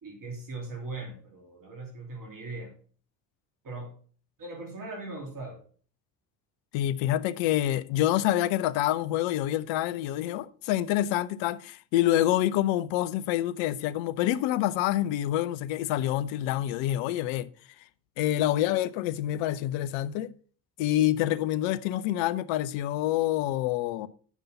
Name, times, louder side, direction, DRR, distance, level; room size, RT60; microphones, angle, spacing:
voice 1, 0.0-2.7 3.6-3.9 4.4-5.6, right 3 dB, 40° right, 2.9 m, -39 dB
voice 2, 6.7-17.5 18.2-20.3 20.8-24.1, left 13 dB, 65° left, 0.7 m, -27 dB
8.3 x 5.3 x 5.4 m
hypercardioid pair, 55°, 49 cm